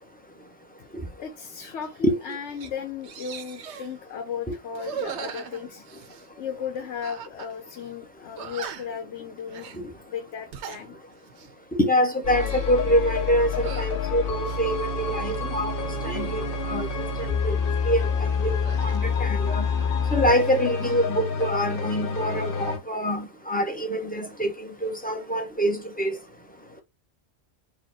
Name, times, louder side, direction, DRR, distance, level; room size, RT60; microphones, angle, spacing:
voice 1, 1.2-5.8 6.4-9.7 10.1-10.9, left 7 dB, 80° left, 1.0 m, -35 dB
sound 1, 1.8-2.0 2.3-2.7 3.0-3.9 4.7-6.3 7.0-7.5 7.8-7.9 8.4-9.0 9.5-9.8 10.3-10.8 11.3-11.5 12.2-12.8 13.5-13.9 14.4-15.4 15.9-16.8 18.6-20.1 20.3-21.0, right 8 dB, 80° right, 0.9 m, -40 dB
voice 2, 11.8-17.6 17.8-18.6 18.8-19.7 20.1-26.2, equal, 10° left, 0.7 m, -25 dB
sound 2, 12.2-22.8, left 5 dB, 55° left, 0.9 m, -27 dB
4.6 x 2.2 x 4.3 m
omnidirectional pair, 1.2 m